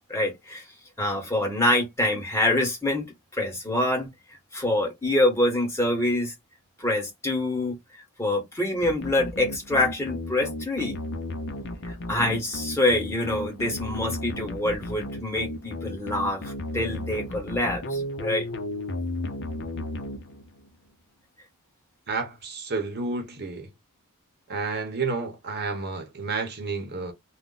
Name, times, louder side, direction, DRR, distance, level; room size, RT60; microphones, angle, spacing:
voice 1, 0.1-0.6 1.0-3.1 3.3-4.1 4.5-6.3 6.8-7.8 8.2-11.0 11.8-18.5, left 1 dB, 10° left, 1.1 m, -25 dB
sound 1, 8.8-20.7, left 1 dB, 50° left, 0.6 m, -34 dB
voice 2, 22.1-23.7 24.5-27.1, right 4 dB, 45° right, 0.8 m, -30 dB
2.4 x 2.0 x 3.8 m
head